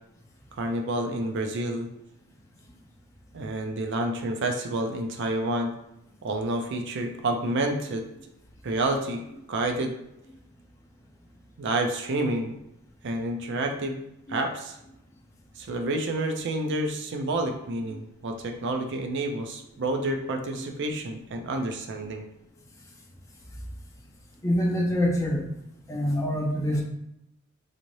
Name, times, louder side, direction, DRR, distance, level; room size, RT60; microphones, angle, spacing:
voice 1, 0.6-1.9 3.3-5.7 6.2-8.0 8.6-9.2 9.5-9.9 11.6-12.5 13.0-14.0 14.3-14.8 15.6-22.2, right 2 dB, 55° right, 4 dB, 0.5 m, -29 dB
voice 2, 24.4-25.4 25.9-26.8, left 1 dB, 15° left, -2 dB, 0.6 m, -25 dB
4.1 x 3.1 x 2.6 m, 0.83 s
head